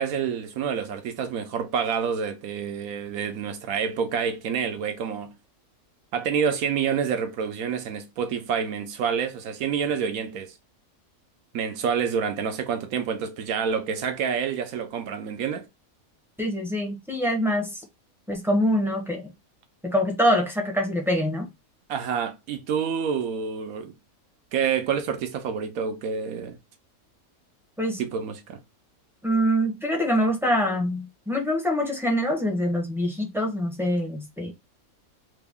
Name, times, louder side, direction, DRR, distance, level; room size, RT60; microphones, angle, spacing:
voice 1, 0.0-5.3 6.1-10.5 11.5-15.6 21.9-23.9 24.5-26.6 28.0-28.6, right 7 dB, 75° right, 1.1 m, -28 dB
voice 2, 16.4-17.9 18.3-19.3 19.8-21.5 27.8-28.0 29.2-34.5, equal, ahead, 0.6 m, -25 dB
3.4 x 2.2 x 3.5 m
omnidirectional pair, 1.5 m